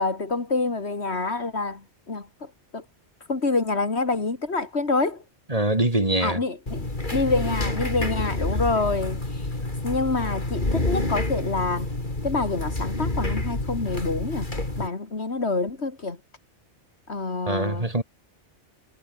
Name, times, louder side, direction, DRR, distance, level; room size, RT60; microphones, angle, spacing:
voice 1, 0.0-2.8 3.3-5.2 6.2-9.5 9.8-11.9 12.2-14.5 14.8-16.2 17.1-17.9, left 3 dB, 65° left, 2.9 m, -27 dB
voice 2, 5.5-6.4 17.5-18.0, right 1 dB, 30° right, 3.3 m, -23 dB
sound 1, 6.7-14.9, left 2 dB, 45° left, 4.0 m, -28 dB
omnidirectional pair, 1.2 m